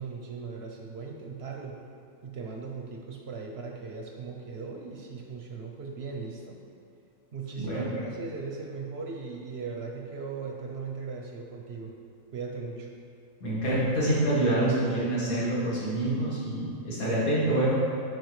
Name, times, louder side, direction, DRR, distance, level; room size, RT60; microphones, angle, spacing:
voice 1, 0.0-1.8 2.2-6.6 7.3-12.0 12.3-12.9, right 4 dB, 55° right, 1 dB, 0.8 m, -38 dB
voice 2, 13.4-17.7, right 1 dB, 90° left, -9 dB, 2.5 m, -26 dB
10.5 x 4.7 x 3.1 m, 2.4 s
omnidirectional pair, 1.5 m